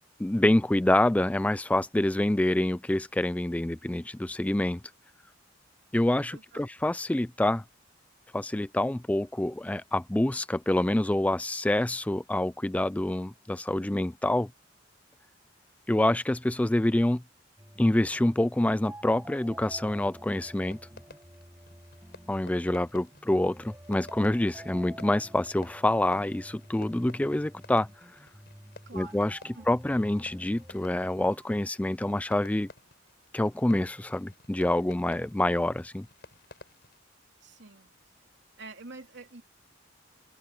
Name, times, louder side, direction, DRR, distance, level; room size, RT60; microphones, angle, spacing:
voice 1, 0.2-4.8 5.9-7.6 8.3-14.5 15.9-17.2 17.8-20.8 22.3-28.2 28.9-29.4 29.7-32.7 33.3-36.1, left 1 dB, 5° left, 0.3 m, -26 dB
voice 2, 6.3-6.7 28.9-29.2 29.5-29.7 37.4-37.9 38.6-39.4, right 3 dB, 65° right, 3.1 m, -46 dB
sound 1, 17.6-31.6, right 1 dB, 15° right, 7.8 m, -49 dB
Fireworks, 20.5-37.0, left 2 dB, 60° left, 5.6 m, -54 dB
head